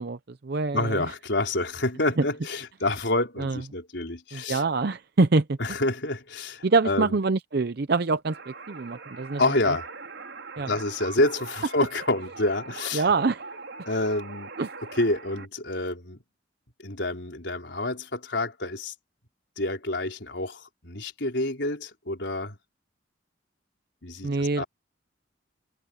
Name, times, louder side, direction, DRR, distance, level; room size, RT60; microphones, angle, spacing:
voice 1, 0.0-1.0 2.2-2.3 3.4-3.6 4.3-5.6 6.6-9.4 9.7-9.8 10.6-10.7 12.9-13.5 14.6-14.7 24.2-24.6, right 3 dB, 55° right, 0.6 m, -25 dB
voice 2, 0.7-4.6 5.6-7.2 9.4-9.9 10.7-13.1 13.9-14.5 15.0-16.2 16.8-18.9 19.6-22.6 24.0-24.6, left 2 dB, 70° left, 4.4 m, -28 dB
sound 1, 8.3-15.5, right 4 dB, 75° right, 4.0 m, -42 dB
head